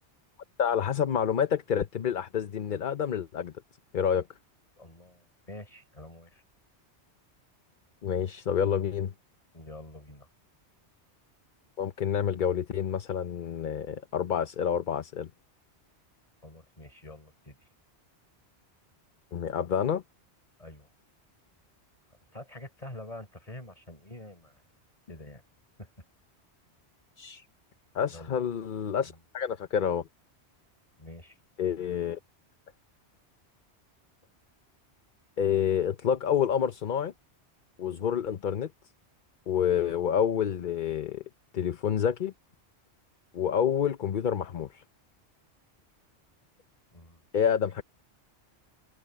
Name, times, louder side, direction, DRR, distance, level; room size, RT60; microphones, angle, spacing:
voice 1, 0.6-3.5 3.9-4.3 8.0-9.1 11.8-15.3 19.3-20.0 27.2-27.4 27.9-30.0 31.6-32.2 35.4-37.1 37.8-38.7 39.5-41.2 41.5-42.3 43.3-44.8 47.3-47.8, left 8 dB, 50° left, 0.8 m, -28 dB
voice 2, 4.8-6.4 9.5-10.3 16.4-17.6 20.6-20.9 22.3-24.6 25.1-25.4 25.8-25.9 28.1-28.4 29.0-29.2 31.0-31.4 46.9-47.2, left 1 dB, 30° left, 4.2 m, -46 dB
omnidirectional pair, 1.2 m